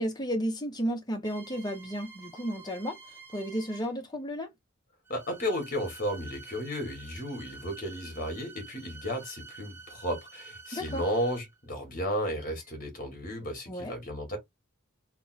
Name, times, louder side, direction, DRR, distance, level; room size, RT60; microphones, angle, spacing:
voice 1, 0.0-4.5 10.7-11.0 13.7-13.9, equal, 20° left, 0.9 m, -33 dB
sound 1, 1.2-4.1 5.1-11.7 12.5-12.7, right 4 dB, 10° right, 0.9 m, -49 dB
voice 2, 5.1-14.4, equal, 40° left, 2.0 m, -33 dB
3.9 x 2.2 x 4.2 m
head